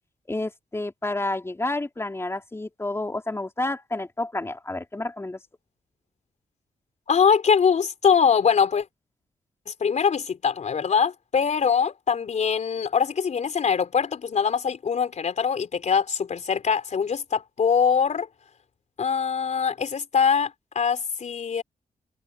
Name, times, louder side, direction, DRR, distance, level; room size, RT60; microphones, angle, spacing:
voice 1, 0.3-5.4, left 2 dB, 20° left, 3.4 m, -30 dB
voice 2, 7.1-8.9 9.7-18.3 19.0-21.6, left 6 dB, 60° left, 4.1 m, -23 dB
cardioid pair, 85°, 13 cm